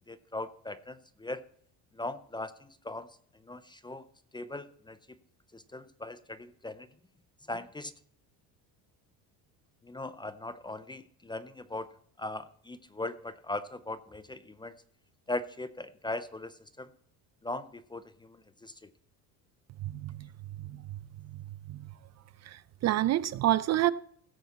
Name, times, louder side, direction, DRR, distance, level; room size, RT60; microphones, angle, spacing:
voice 1, 0.1-1.4 1.9-3.1 3.5-4.0 4.3-5.0 5.5-6.9 7.5-7.9 9.8-11.9 12.2-14.7 15.3-16.9 17.4-18.7, left 2 dB, 10° left, 0.5 m, -39 dB
voice 2, 19.8-20.3 20.7-20.8 21.7-21.9 22.4-23.9, right 14 dB, 45° right, 0.5 m, -28 dB
16.5 x 8.0 x 4.2 m
cardioid pair, 120°, 39 cm